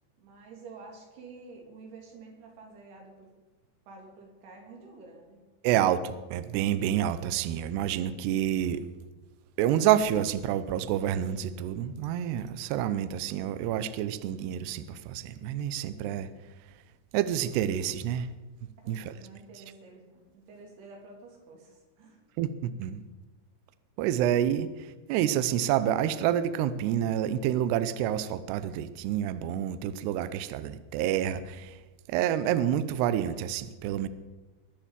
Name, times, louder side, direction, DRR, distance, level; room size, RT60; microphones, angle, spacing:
voice 1, 0.2-3.3 3.9-5.4 18.8-22.2 33.9-34.1, right 3 dB, 60° right, 1 dB, 4.8 m, -49 dB
voice 2, 5.6-8.9 9.6-16.3 17.1-18.3 18.9-19.1 22.4-23.0 24.0-31.8 32.1-34.1, right 10 dB, 80° right, 13 dB, 2.5 m, -28 dB
22.0 x 7.3 x 7.4 m, 1.2 s
omnidirectional pair, 5.5 m